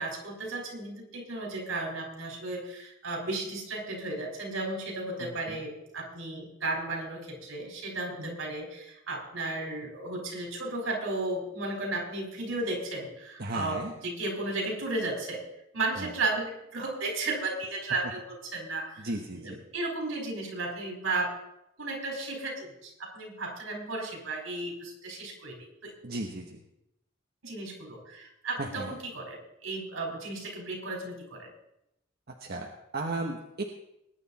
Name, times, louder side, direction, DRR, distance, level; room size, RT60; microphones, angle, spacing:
voice 1, 0.0-15.4 15.7-19.1 19.3-21.3 21.8-25.6 25.8-25.9 27.4-31.5, right 2 dB, 75° right, 1 dB, 4.5 m, -34 dB
voice 2, 5.2-5.6 8.2-8.4 13.4-13.9 16.0-16.1 19.0-19.6 26.0-26.6 28.6-29.0 32.4-33.6, right 2 dB, 50° right, 2 dB, 1.2 m, -35 dB
20.5 x 9.8 x 4.2 m, 0.83 s
head